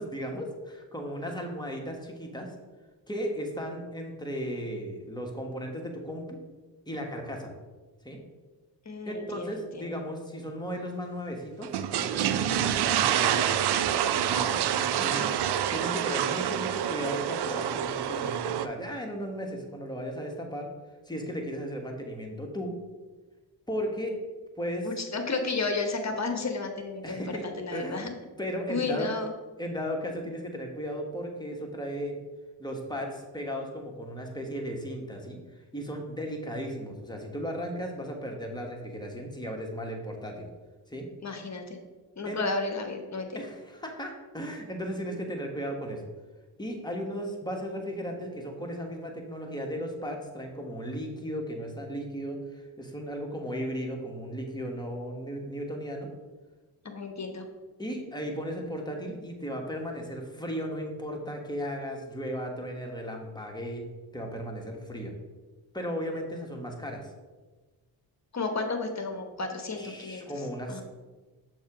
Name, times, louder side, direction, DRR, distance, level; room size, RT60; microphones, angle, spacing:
voice 1, 0.0-2.5 3.1-6.4 6.9-7.5 8.0-8.2 9.1-15.4 15.7-20.7 21.1-22.7 23.7-24.2 24.6-24.9 27.0-27.5 27.7-28.1 28.4-29.1 29.6-32.2 32.6-35.4 35.7-40.5 40.9-41.1 42.2-42.4 43.3-46.1 46.6-56.1 57.8-63.9 64.1-65.1 65.7-67.1 69.8-70.8, equal, 10° left, 1 dB, 1.3 m, -35 dB
voice 2, 8.8-9.9 14.6-14.8 24.8-28.1 28.7-29.3 41.2-41.8 42.2-43.4 56.8-57.4 68.3-70.4 70.7-70.8, left 3 dB, 35° left, 5 dB, 1.1 m, -32 dB
sound 1, 11.6-18.7, right 10 dB, 60° right, 0.5 m, -27 dB
6.3 x 3.0 x 4.9 m, 1.3 s
supercardioid pair, 45°, 46 cm